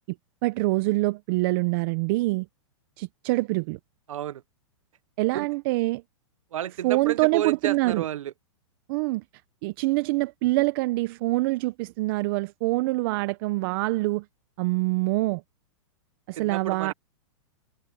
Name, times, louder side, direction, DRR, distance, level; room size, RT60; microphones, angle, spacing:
voice 1, 0.4-2.5 3.0-3.8 5.2-6.0 6.8-8.0 8.9-9.2 9.6-14.2 14.6-15.4 16.3-16.9, right 22 dB, 45° right, 0.8 m, -25 dB
voice 2, 4.1-4.4 5.3-5.5 6.5-8.3 16.4-16.9, right 11 dB, 80° right, 0.8 m, -31 dB
hypercardioid pair, 140°, 17 cm